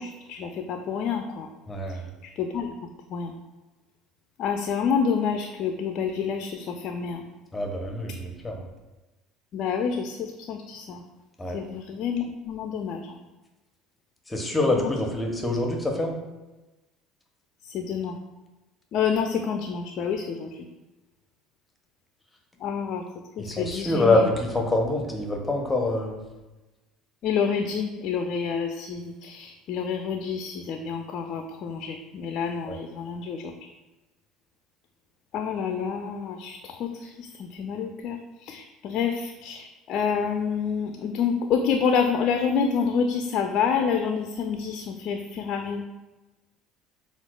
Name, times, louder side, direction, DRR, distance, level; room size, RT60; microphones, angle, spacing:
voice 1, 0.0-1.5 2.4-2.7 3.1-3.3 4.4-7.2 9.5-11.0 11.5-13.1 14.5-14.9 17.7-18.2 18.9-20.5 22.6-23.0 23.4-24.1 27.2-33.5 35.3-38.2 38.5-45.8, left 6 dB, 55° left, 4 dB, 0.3 m, -28 dB
voice 2, 1.7-2.1 7.5-8.6 11.4-11.6 14.3-16.2 23.4-26.2 32.7-32.8, left 2 dB, 15° left, 1 dB, 0.7 m, -25 dB
5.6 x 2.3 x 2.2 m, 1.1 s
hypercardioid pair, 65°, 0 cm